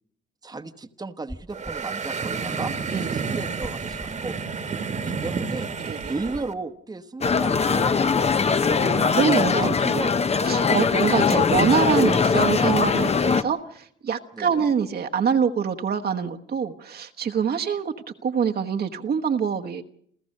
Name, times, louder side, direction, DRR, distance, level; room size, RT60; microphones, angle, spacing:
voice 1, 0.4-4.3 5.0-5.7 6.1-8.0 9.2-10.4 14.3-14.6, right 3 dB, 20° right, 8 dB, 1.2 m, -34 dB
sound 1, 1.3-1.9 3.6-4.2 6.0-6.5, equal, 5° left, 1.4 m, -41 dB
sound 2, 1.5-6.5, right 5 dB, 35° right, 1.5 m, -30 dB
voice 2, 2.9-3.3 5.8-6.1 8.8-9.7 10.4-17.9 18.2-19.8, right 6 dB, 50° right, 4 dB, 1.2 m, -25 dB
sound 3, 7.2-13.4, left 5 dB, 30° left, 0.9 m, -21 dB
28.5 x 14.0 x 6.6 m, 0.66 s
cardioid pair, 90°, 20 cm